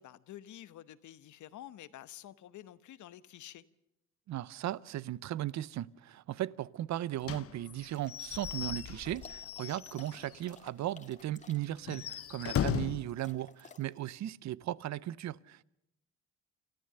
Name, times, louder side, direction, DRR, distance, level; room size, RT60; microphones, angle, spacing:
voice 1, 0.0-3.6, left 12 dB, 75° left, 1.0 m, -49 dB
voice 2, 4.3-15.6, right 13 dB, 65° right, 0.7 m, -37 dB
Slam / Squeak / Wood, 7.2-10.4 10.8-10.9 11.2-11.3 11.8-13.1, left 10 dB, 50° left, 0.9 m, -37 dB
sound 1, 7.9-14.0, left 4 dB, 25° left, 1.9 m, -57 dB
29.0 x 14.0 x 6.8 m
cardioid pair, 90°, 30 cm